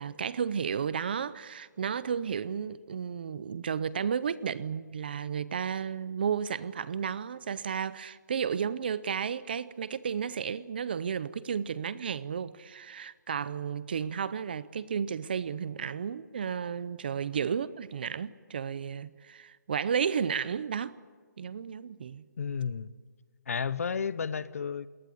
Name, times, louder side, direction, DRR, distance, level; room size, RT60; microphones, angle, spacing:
voice 1, 0.0-21.0 21.4-22.2, right 7 dB, 30° right, 0.6 m, -33 dB
voice 2, 22.4-22.9 23.5-24.9, left 6 dB, 50° left, 0.8 m, -32 dB
20.5 x 19.0 x 9.7 m
hypercardioid pair, 175°, 10 cm